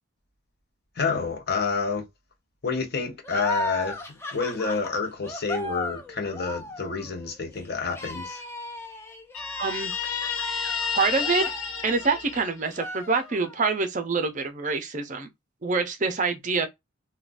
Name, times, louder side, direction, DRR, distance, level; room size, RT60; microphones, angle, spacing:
voice 1, 1.0-2.0 2.6-8.4, left 4 dB, 50° left, 0.7 m, -29 dB
sound 1, 3.2-12.3 12.7-13.7, left 1 dB, 10° left, 0.5 m, -37 dB
Guitar, 9.3-12.9, left 6 dB, 85° left, 0.7 m, -30 dB
voice 2, 9.6-9.9 10.9-11.5 11.8-15.3 15.6-16.7, right 4 dB, 35° right, 0.5 m, -26 dB
3.6 x 2.2 x 2.4 m
head